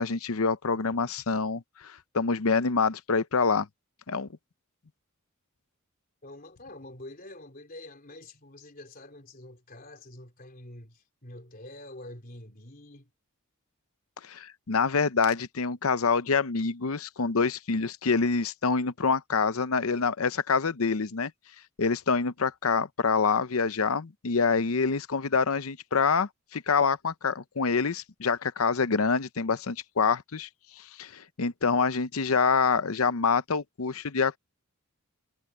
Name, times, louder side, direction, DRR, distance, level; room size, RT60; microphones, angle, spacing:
voice 1, 0.0-3.7 4.1-4.3 14.2-21.3 21.8-30.5 30.8-34.4, left 5 dB, 75° left, 0.8 m, -26 dB
voice 2, 6.2-13.1, left 1 dB, 40° left, 3.7 m, -46 dB
head